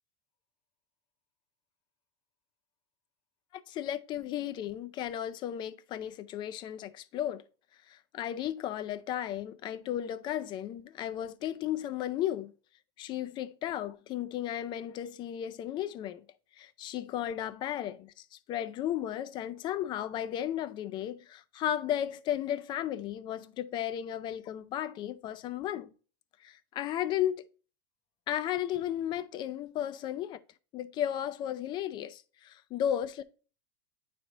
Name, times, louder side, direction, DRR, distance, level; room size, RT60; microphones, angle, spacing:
voice 1, 3.5-7.4 7.9-12.5 13.0-16.2 16.6-25.9 26.4-27.4 28.3-30.4 30.7-33.2, left 11 dB, 35° left, 0.4 m, -34 dB
9.0 x 3.3 x 3.9 m
supercardioid pair, 135°, 14 cm